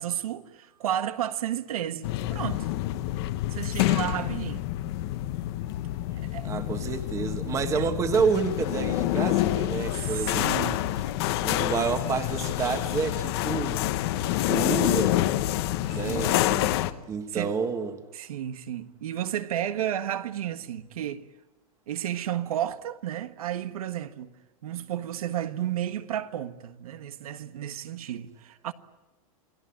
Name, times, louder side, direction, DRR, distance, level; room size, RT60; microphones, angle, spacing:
voice 1, 0.0-2.7 3.5-4.6 6.2-6.5 7.7-7.9 9.9-11.1 15.9-16.3 17.3-17.5 18.1-21.2 21.9-24.3 24.6-28.7, right 11 dB, 85° right, 1.6 m, -32 dB
sound 1, 2.0-16.9, left 14 dB, 45° left, 1.2 m, -27 dB
voice 2, 6.4-10.5 11.4-13.8 14.4-15.2 15.9-16.8 17.1-18.0, right 5 dB, 15° right, 1.6 m, -29 dB
29.0 x 20.0 x 9.0 m
supercardioid pair, 165°, 18 cm